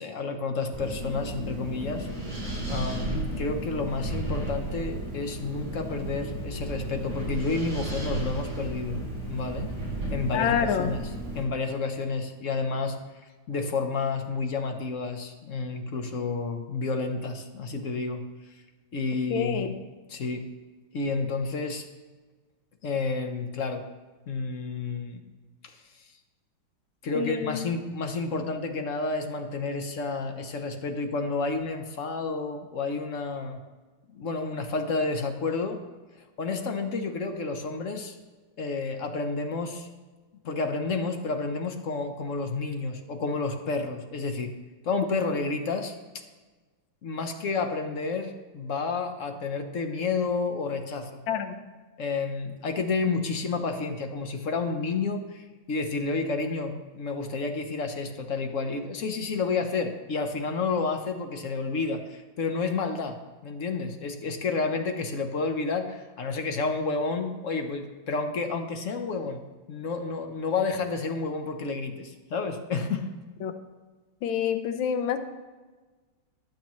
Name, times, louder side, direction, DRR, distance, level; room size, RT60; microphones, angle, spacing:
voice 1, 0.0-2.1 2.7-9.0 9.3-9.7 10.1-11.1 11.3-13.0 13.5-18.2 18.9-19.8 20.1-20.5 20.9-21.8 22.8-23.8 24.3-25.2 25.6-25.8 27.0-33.6 34.1-35.8 36.4-38.2 38.6-39.9 40.4-44.5 44.8-45.9 47.0-51.2 52.0-63.2 63.4-69.4 69.7-73.1, left 4 dB, 50° left, 5 dB, 1.0 m, -30 dB
Wind, 0.7-11.4, right 1 dB, 15° right, 3.4 m, -33 dB
voice 2, 10.3-10.9 19.3-19.7 27.1-27.6 51.3-51.6 73.4-73.5 74.2-75.2, left 8 dB, 70° left, 8 dB, 1.5 m, -27 dB
21.0 x 7.2 x 3.1 m, 1.3 s
omnidirectional pair, 2.3 m